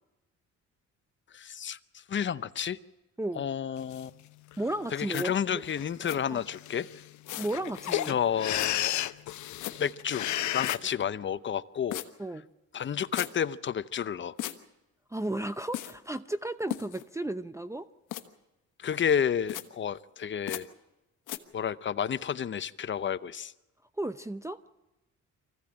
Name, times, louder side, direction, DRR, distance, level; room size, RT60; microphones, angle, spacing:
voice 1, 1.3-2.8 3.3-4.1 4.9-6.9 8.1-9.0 9.8-12.0 12.7-14.4 18.8-20.7 21.5-23.5, left 8 dB, 40° left, 14 dB, 0.8 m, -31 dB
sound 1, 3.9-4.0 4.5-4.9 5.6-5.8 6.1-6.2 6.4-10.8, left 13 dB, 70° left, 0.8 m, -32 dB
voice 2, 4.6-5.6 6.3-6.4 7.4-8.2 12.2-12.5 15.1-17.9 24.0-24.6, right 1 dB, 10° right, 12 dB, 0.7 m, -34 dB
sound 2, 5.1-5.3 6.1-6.2 7.3-7.6 8.6-8.7 9.6-9.7 10.6-10.8 11.9-12.1 13.1-13.3 14.4-14.6 15.7-15.9 16.7-17.0 18.1-18.2 19.5-19.6 20.5-20.6 21.3-21.4, left 14 dB, 90° left, 1.4 m, -35 dB
24.0 x 15.5 x 8.9 m, 1.0 s
cardioid pair, 90°, 30 cm